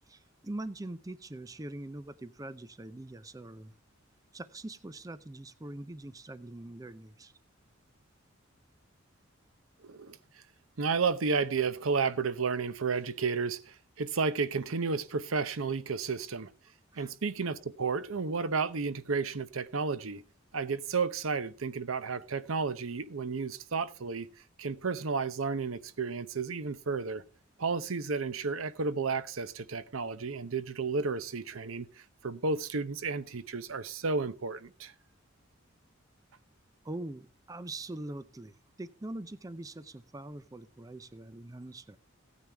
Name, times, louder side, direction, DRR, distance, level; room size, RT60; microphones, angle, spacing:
voice 1, 0.1-3.7 4.3-7.3 16.9-17.1 36.8-42.0, right 1 dB, 15° right, 0.5 m, -43 dB
voice 2, 9.8-10.2 10.8-16.5 17.0-20.2 20.5-24.3 24.6-27.2 27.6-31.9 32.2-34.9, right 4 dB, 85° right, 0.8 m, -32 dB
16.0 x 9.4 x 3.4 m
head